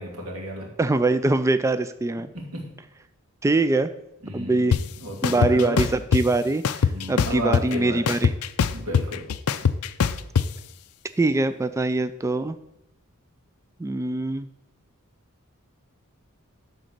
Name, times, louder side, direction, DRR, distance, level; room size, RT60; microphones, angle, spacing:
voice 1, 0.0-0.7 2.3-2.6 4.2-4.6 5.0-5.8 6.9-8.1 8.7-9.3, equal, 70° right, -2 dB, 3.0 m, -33 dB
voice 2, 0.8-2.3 3.4-3.9 4.3-4.8 5.2-8.3 11.2-12.6 13.8-14.5, right 2 dB, 15° right, 12 dB, 0.3 m, -23 dB
sound 1, 4.7-4.8 5.2-6.2 6.6-7.7 8.1-10.5, left 6 dB, 80° left, 0.5 m, -21 dB
12.0 x 4.0 x 6.6 m, 0.86 s
head